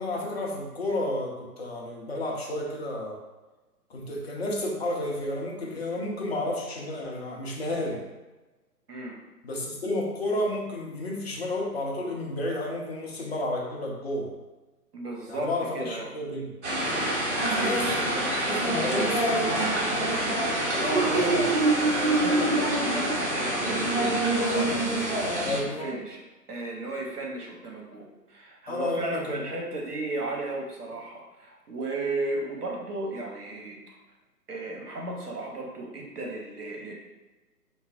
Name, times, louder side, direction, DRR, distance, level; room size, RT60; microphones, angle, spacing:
voice 1, 0.0-3.2 3.9-8.0 9.4-14.3 15.3-16.5 17.5-18.1 18.4-20.2 20.7-21.5 25.4-25.9 28.7-29.4, left 1 dB, 40° left, -2 dB, 0.6 m, -32 dB
voice 2, 14.9-16.1 17.5-18.2 20.8-21.7 22.0-26.2 26.5-33.8 34.5-36.9, right 2 dB, 70° right, -1 dB, 0.9 m, -34 dB
sound 1, 16.6-25.6, right 1 dB, 45° right, 0.7 m, -25 dB
3.9 x 2.0 x 2.5 m, 1.1 s
figure-of-eight pair, 135°, 47 cm